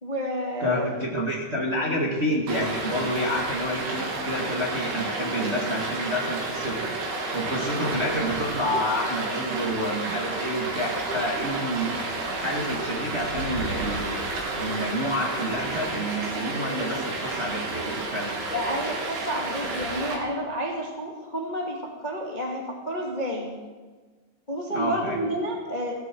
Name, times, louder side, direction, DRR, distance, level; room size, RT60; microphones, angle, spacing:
voice 1, 0.0-0.9 18.5-23.5 24.5-25.9, equal, 20° left, -2 dB, 1.4 m, -30 dB
voice 2, 0.6-6.9 7.3-11.9 12.4-14.2 14.5-18.4 24.7-25.2, equal, 25° right, -3 dB, 1.7 m, -29 dB
Stream, 2.5-20.1, right 2 dB, 80° right, 5.1 m, -31 dB
18.0 x 17.0 x 4.7 m, 1.4 s
omnidirectional pair, 4.5 m